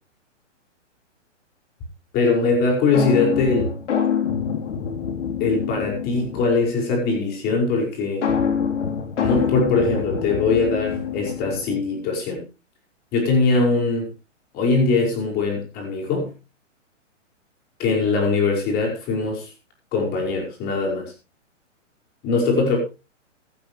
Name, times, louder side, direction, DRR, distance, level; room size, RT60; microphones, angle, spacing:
voice 1, 2.1-3.7 5.4-8.3 9.2-12.4 13.1-14.1 14.5-16.3 17.8-19.5 19.9-21.1 22.2-22.8, left 3 dB, 25° left, 1 dB, 5.6 m, -21 dB
sound 1, 2.9-6.7 8.2-11.8, left 7 dB, 70° left, 3.8 m, -25 dB
16.5 x 11.5 x 3.2 m, 0.30 s
hypercardioid pair, 150°, 38 cm